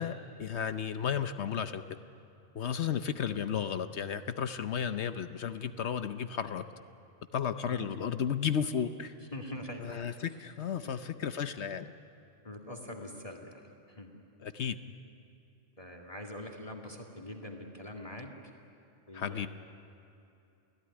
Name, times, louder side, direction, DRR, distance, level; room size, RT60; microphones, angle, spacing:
voice 1, 0.0-1.8 2.5-6.6 7.3-9.1 9.8-11.9 14.4-14.8 19.1-19.5, left 8 dB, 70° left, 10 dB, 1.0 m, -33 dB
voice 2, 7.7-8.0 9.3-10.0 10.8-10.9 12.4-13.6 13.9-14.1 15.8-18.3 19.1-19.5, left 1 dB, 30° left, 3 dB, 2.2 m, -43 dB
28.5 x 17.5 x 9.9 m, 2.7 s
omnidirectional pair, 1.2 m